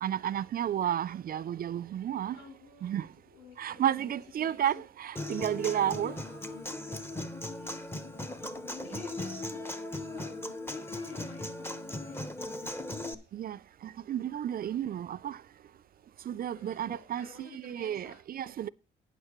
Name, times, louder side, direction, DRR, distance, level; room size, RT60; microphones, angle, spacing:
voice 1, 0.0-2.4 2.8-3.1 3.6-6.2 8.9-9.0 13.3-15.4 16.2-18.7, right 10 dB, 50° right, 0.4 m, -32 dB
voice 2, 2.3-4.8 5.8-6.7 7.5-12.8 13.1-13.3 16.5-18.2, left 3 dB, 80° left, 7.0 m, -53 dB
Human voice / Acoustic guitar, 5.2-13.1, left 2 dB, 10° left, 0.9 m, -38 dB
12.0 x 9.1 x 3.0 m
cardioid pair, 90°, 20 cm